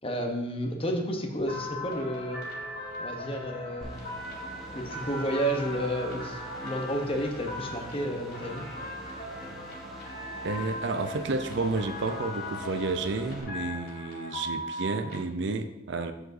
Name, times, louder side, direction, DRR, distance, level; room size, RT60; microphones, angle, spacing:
voice 1, 0.0-2.4 3.0-3.9 4.7-8.7, equal, 25° left, 3 dB, 0.9 m, -31 dB
sound 1, 1.3-9.7, right 2 dB, 30° right, 2.2 m, -50 dB
sound 2, 1.5-15.2, left 1 dB, 50° left, 2.3 m, -39 dB
sound 3, 3.8-13.4, right 1 dB, ahead, 1.2 m, -45 dB
voice 2, 10.4-16.1, right 3 dB, 55° right, 8 dB, 0.6 m, -31 dB
14.0 x 4.8 x 2.7 m, 1.0 s
head